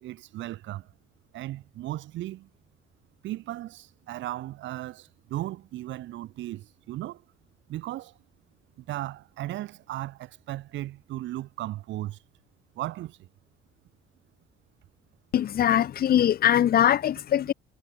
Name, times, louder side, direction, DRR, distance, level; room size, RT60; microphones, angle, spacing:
voice 1, 0.0-0.8 1.3-2.5 3.2-7.2 7.7-8.1 8.9-12.2 12.8-13.2, right 15 dB, 70° right, 0.5 m, -36 dB
voice 2, 15.3-17.5, left 10 dB, 50° left, 0.5 m, -22 dB
cardioid pair, 90°, 20 cm